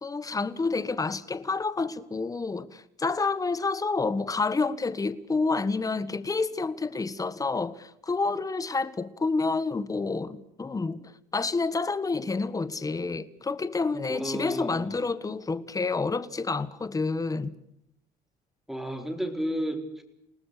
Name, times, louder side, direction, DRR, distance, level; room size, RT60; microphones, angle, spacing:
voice 1, 0.0-17.5, left 3 dB, 20° left, 1.5 m, -29 dB
voice 2, 14.1-15.0 18.7-20.0, equal, ahead, 4.3 m, -32 dB
29.5 x 18.5 x 6.8 m
cardioid pair, 110°, 17 cm